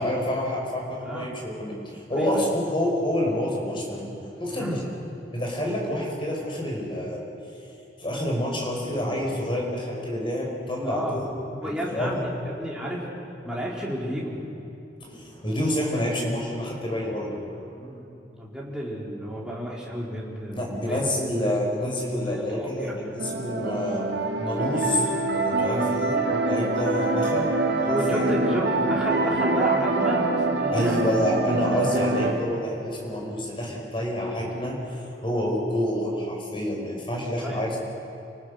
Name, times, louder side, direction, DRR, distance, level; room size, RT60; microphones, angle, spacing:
voice 1, 0.0-4.1 4.4-4.8 5.3-7.2 8.0-11.2 11.9-12.2 15.0-17.4 20.5-24.0 24.4-27.5 27.8-28.2 30.7-37.8, left 1 dB, 30° left, -1 dB, 4.9 m, -28 dB
voice 2, 1.0-1.4 2.2-2.4 4.5-4.8 10.8-11.3 11.6-13.1 13.4-14.4 17.8-18.0 18.4-21.0 21.4-21.6 22.2-23.0 25.6-26.0 27.9-31.2 37.4-37.8, equal, 5° right, -5 dB, 4.1 m, -31 dB
sound 1, 23.2-32.3, right 2 dB, 70° right, 2.1 m, -25 dB
29.5 x 19.0 x 6.5 m, 2.8 s
head